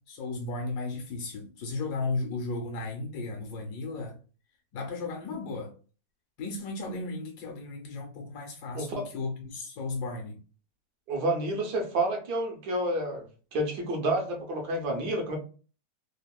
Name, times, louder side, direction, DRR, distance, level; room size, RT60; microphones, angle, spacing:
voice 1, 0.1-4.1 4.7-5.7 6.4-10.4, left 3 dB, 80° left, 1.2 m, -35 dB
voice 2, 8.7-9.1 11.1-15.4, right 1 dB, 75° right, 1.3 m, -29 dB
3.4 x 2.0 x 2.2 m
omnidirectional pair, 1.8 m